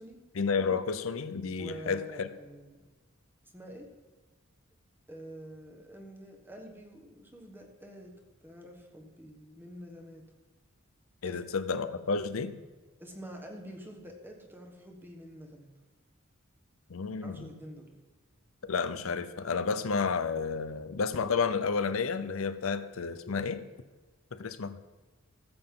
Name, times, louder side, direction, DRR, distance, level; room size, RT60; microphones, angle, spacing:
voice 1, 0.4-2.3 11.2-12.5 16.9-17.5 18.6-23.6 24.3-24.8, left 5 dB, 80° left, 13 dB, 0.6 m, -31 dB
voice 2, 1.6-2.8 3.5-3.9 5.1-8.1 8.4-10.2 11.2-11.4 13.0-15.7 17.2-17.9, equal, 10° right, 2 dB, 1.3 m, -47 dB
14.5 x 7.8 x 3.8 m, 1.3 s
head